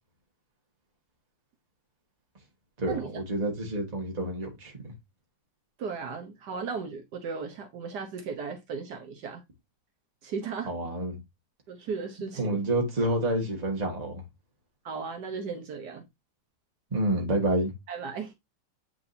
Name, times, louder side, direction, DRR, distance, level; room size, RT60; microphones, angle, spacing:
voice 1, 2.8-4.9 10.7-11.2 12.4-14.2 16.9-17.7, right 1 dB, 25° right, 1.8 m, -28 dB
voice 2, 5.8-9.4 10.2-10.9 11.7-12.6 14.8-16.1 17.9-18.3, right 5 dB, 75° right, 1.5 m, -36 dB
8.7 x 4.5 x 2.7 m
omnidirectional pair, 1.9 m